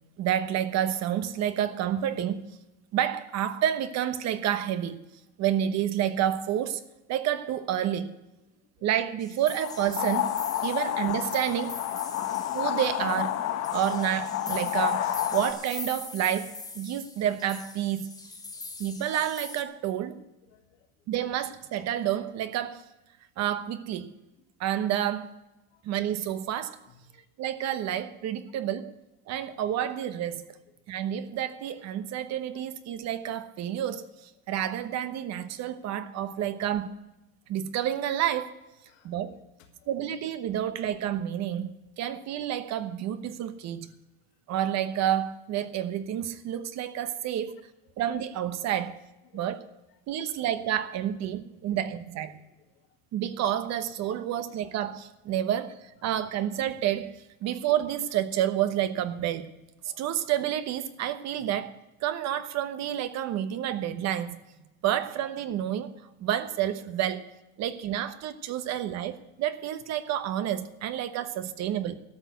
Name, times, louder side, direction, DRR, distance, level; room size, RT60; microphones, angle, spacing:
voice 1, 0.2-2.4 2.9-5.0 5.4-6.8 7.1-8.1 8.8-10.3 10.6-11.7 12.5-13.4 13.7-18.1 18.8-20.2 21.1-22.8 23.4-24.1 24.6-25.3 25.8-26.8 27.4-28.9 29.3-30.4 30.9-36.9 37.5-38.5 39.0-39.3 39.9-41.7 42.0-43.9 44.5-47.6 48.0-48.9 49.3-49.6 50.1-52.4 53.1-57.1 57.4-59.5 59.8-61.7 62.0-64.3 64.8-65.9 66.2-67.3 67.6-71.9, right 11 dB, 55° right, 1.1 m, -29 dB
sound 1, 9.2-19.6, left 3 dB, 10° left, 1.3 m, -43 dB
sound 2, 9.6-15.5, left 12 dB, 50° left, 1.1 m, -30 dB
voice 2, 20.5-21.1 25.7-25.8 26.9-27.3 29.4-29.5 38.9-39.2 39.6-40.1 43.8-44.0 49.2-49.5 50.2-50.3 51.7-51.8 52.3-53.0 61.4-61.5 67.7-67.8 70.9-71.0, left 8 dB, 80° left, 2.3 m, -61 dB
13.0 x 6.3 x 9.3 m
cardioid pair, 125°, 32 cm